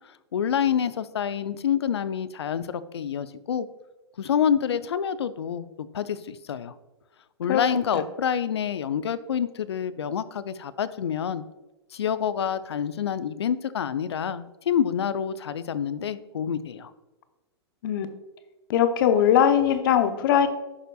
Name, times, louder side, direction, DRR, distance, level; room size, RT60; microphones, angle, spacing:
voice 1, 0.3-3.7 4.2-6.7 7.4-11.4 11.9-16.9, left 8 dB, 70° left, 15 dB, 0.5 m, -27 dB
voice 2, 18.7-20.5, left 9 dB, 55° left, 9 dB, 0.9 m, -20 dB
11.0 x 6.6 x 2.3 m, 1.1 s
figure-of-eight pair, 110°, 14 cm